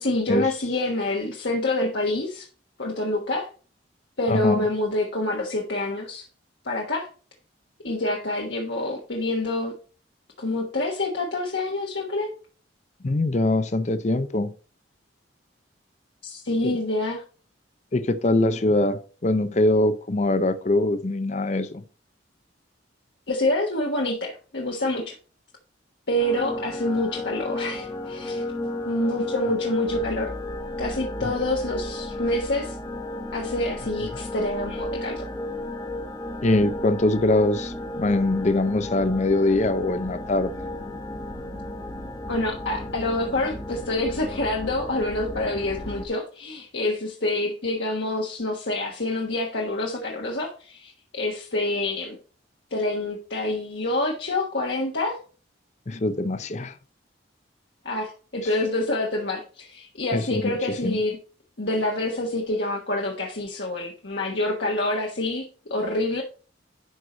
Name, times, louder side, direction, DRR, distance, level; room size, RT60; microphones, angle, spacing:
voice 1, 0.0-2.5 2.8-3.5 4.2-6.3 6.6-7.1 7.8-9.7 10.4-12.3 16.2-17.2 23.3-25.1 26.1-28.4 28.8-30.3 30.8-32.8 33.3-35.3 42.3-52.2 52.7-55.2 57.8-61.2 61.6-66.2, left 2 dB, 60° left, 1.3 m, -27 dB
voice 2, 4.3-4.7 13.0-14.5 16.6-16.8 17.9-21.8 36.4-40.5 55.9-56.7 60.1-60.6 60.8-61.0, left 2 dB, 40° left, 0.6 m, -23 dB
sound 1, 26.2-46.1, left 1 dB, 20° left, 1.1 m, -33 dB
11.0 x 4.7 x 3.9 m
head